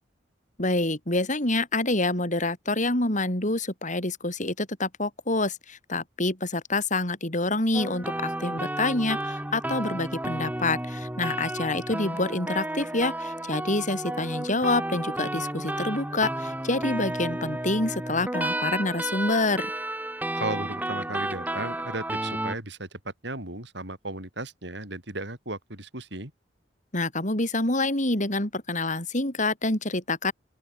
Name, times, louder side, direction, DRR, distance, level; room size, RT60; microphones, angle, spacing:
voice 1, 0.6-19.7 26.9-30.3, left 2 dB, 45° left, 7.2 m, -27 dB
sound 1, 7.7-22.6, right 1 dB, 10° right, 2.2 m, -32 dB
voice 2, 20.3-26.3, right 2 dB, 70° right, 7.4 m, -35 dB
open air
head